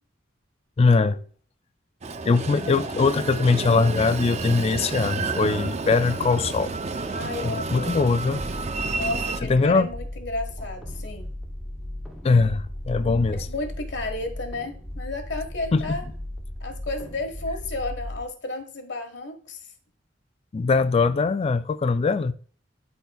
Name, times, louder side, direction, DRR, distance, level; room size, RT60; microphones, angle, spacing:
voice 1, 0.8-1.3 2.2-6.7 7.4-8.4 9.4-9.9 12.2-13.5 15.7-16.0 20.5-22.3, left 4 dB, 35° left, 0.3 m, -21 dB
Train, 2.0-9.4, right 3 dB, 35° right, 0.5 m, -30 dB
voice 2, 7.1-7.9 8.7-11.3 13.5-16.0 16.6-19.6, left 2 dB, 70° left, 1.4 m, -32 dB
sound 1, 8.3-18.2, left 1 dB, ahead, 0.8 m, -36 dB
11.5 x 4.3 x 2.3 m
head